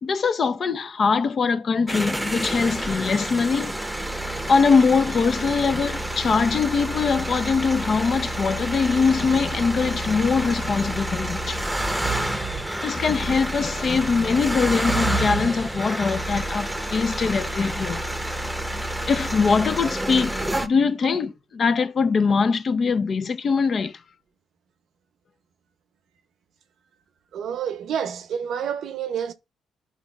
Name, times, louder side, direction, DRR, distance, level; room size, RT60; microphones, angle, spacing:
voice 1, 0.0-3.7 4.5-11.6 12.8-18.0 19.1-23.9, left 5 dB, 45° left, 0.6 m, -22 dB
sound 1, 1.9-20.7, right 1 dB, 5° right, 0.8 m, -28 dB
voice 2, 27.3-29.3, right 8 dB, 70° right, 0.7 m, -29 dB
12.5 x 5.2 x 2.4 m
cardioid pair, 90°, 0 cm